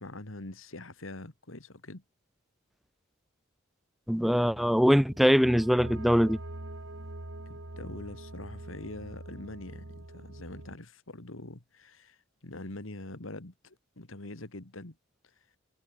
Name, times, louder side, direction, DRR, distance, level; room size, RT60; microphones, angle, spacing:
voice 1, 0.0-2.0 7.5-15.0, left 2 dB, 80° left, 2.4 m, -44 dB
voice 2, 4.1-6.4, equal, ahead, 0.4 m, -22 dB
sound 1, 4.4-10.8, right 1 dB, 70° right, 2.2 m, -44 dB
head